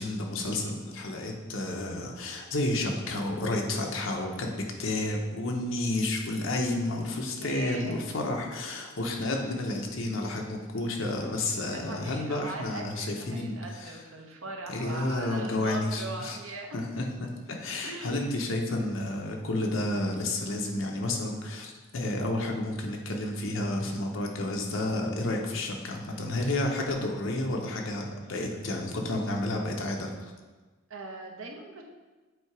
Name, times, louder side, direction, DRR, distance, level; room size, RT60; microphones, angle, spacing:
voice 1, 0.0-4.5 4.8-13.9 14.7-16.4 16.7-30.3, left 2 dB, 70° left, 1 dB, 0.9 m, -31 dB
voice 2, 7.4-8.0 11.5-16.8 17.8-18.3 30.9-31.8, right 3 dB, 75° right, 1 dB, 0.9 m, -40 dB
7.9 x 2.8 x 4.7 m, 1.3 s
head